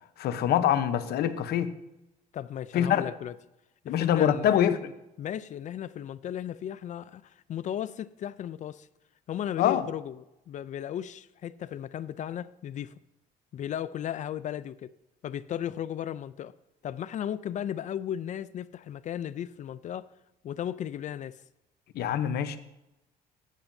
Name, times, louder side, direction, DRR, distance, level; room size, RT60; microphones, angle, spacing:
voice 1, 0.2-1.7 2.7-3.0 3.9-4.9 9.6-9.8 21.9-22.6, left 10 dB, 70° left, 0.9 m, -25 dB
voice 2, 2.3-3.4 3.8-4.6 5.2-8.9 9.3-12.9 13.5-14.9 15.2-16.5 16.8-20.1 20.4-21.4, left 10 dB, 45° left, 0.4 m, -35 dB
14.5 x 9.0 x 2.7 m
cardioid pair, 110°, 17 cm